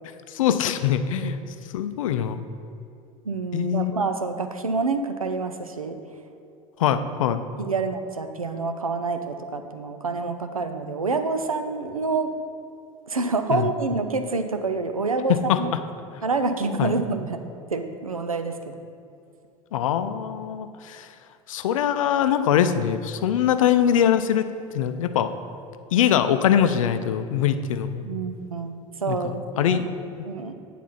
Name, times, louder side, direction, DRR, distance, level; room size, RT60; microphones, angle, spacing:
voice 1, 0.3-1.4 1.7-2.4 3.5-3.9 6.8-7.4 13.5-13.7 15.3-15.6 16.8-16.9 19.7-21.1 21.5-24.5 24.7-25.3 25.9-28.0 29.1-30.3, left 9 dB, 70° left, 11 dB, 0.5 m, -23 dB
voice 2, 3.2-6.0 7.6-12.3 13.1-15.7 16.2-17.4 17.7-18.8 28.0-29.9 30.2-30.5, right 3 dB, 90° right, 7 dB, 0.5 m, -27 dB
9.2 x 4.1 x 5.7 m, 2.6 s
figure-of-eight pair, 70°, 18 cm